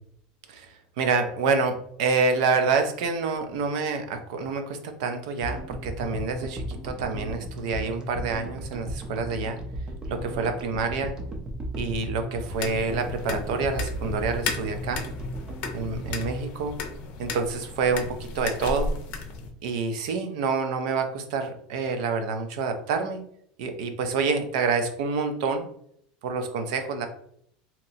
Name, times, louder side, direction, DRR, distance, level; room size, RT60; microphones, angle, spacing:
voice 1, 1.0-9.6 10.1-11.1 11.8-15.0 15.7-16.8 17.2-18.9 19.6-23.2 23.6-25.7 26.2-27.1, right 4 dB, 70° right, 7 dB, 0.6 m, -27 dB
sound 1, 5.4-17.7, right 1 dB, 20° right, 0.5 m, -36 dB
sound 2, 12.5-19.5, left 3 dB, 40° left, 0.5 m, -35 dB
2.9 x 2.2 x 3.9 m, 0.67 s
supercardioid pair, 165°, 4 cm